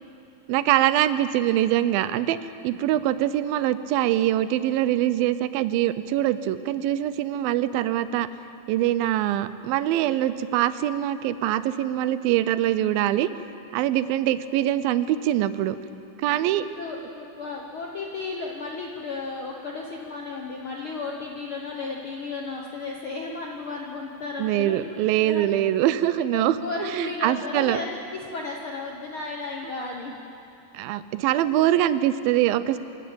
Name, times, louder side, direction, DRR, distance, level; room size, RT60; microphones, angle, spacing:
voice 1, 0.5-2.4 2.6-8.3 8.7-13.3 13.7-15.8 16.2-16.6 24.4-27.8 30.7-32.8, right 13 dB, 85° right, 14 dB, 2.4 m, -23 dB
voice 2, 16.3-24.8 25.2-25.5 26.3-30.1, left 3 dB, 65° left, 0 dB, 1.3 m, -34 dB
26.0 x 11.5 x 8.7 m, 2.7 s
omnidirectional pair, 4.1 m